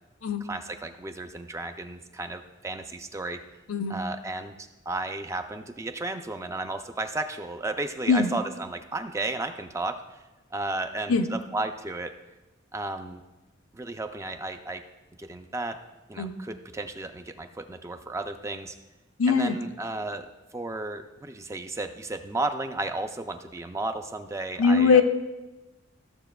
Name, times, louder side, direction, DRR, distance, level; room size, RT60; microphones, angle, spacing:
voice 1, 0.4-3.4 3.9-10.0 10.5-12.1 12.7-13.2 13.7-14.8 15.2-15.8 16.1-18.8 19.3-20.3 20.5-25.0, right 2 dB, 15° right, 7 dB, 0.3 m, -33 dB
voice 2, 19.2-19.6 24.6-25.0, left 5 dB, 90° left, 7 dB, 0.6 m, -21 dB
14.0 x 6.8 x 2.2 m, 1.1 s
head